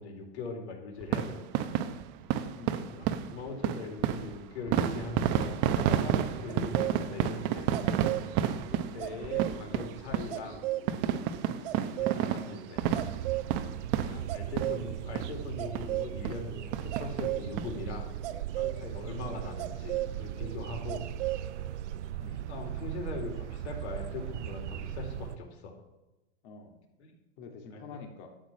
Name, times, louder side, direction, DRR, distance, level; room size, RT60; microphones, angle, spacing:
voice 1, 0.0-1.5 2.7-3.0 3.3-7.7 8.4-10.6 11.8-12.8 14.0-18.1 18.5-21.0 22.3-25.7 27.0-27.1 27.7-28.0, left 3 dB, 70° left, 3 dB, 4.1 m, -41 dB
sound 1, 1.0-14.9 15.2-15.3 15.7-15.9 16.2-16.4 16.7-17.7 18.1-18.2 18.4-18.5, right 10 dB, 30° right, 0.8 m, -31 dB
voice 2, 2.5-2.8 9.1-9.9 12.4-12.7 19.3-19.5 22.2-22.5 26.4-26.8 27.4-28.3, left 4 dB, 50° left, 3 dB, 2.1 m, -48 dB
sound 2, 6.5-16.2 16.9-21.4 21.7-22.0, right 15 dB, 55° right, 1.0 m, -36 dB
sound 3, 12.8-25.4, right 12 dB, 85° right, 0.7 m, -38 dB
12.5 x 9.0 x 6.1 m, 0.99 s
supercardioid pair, 150°, 34 cm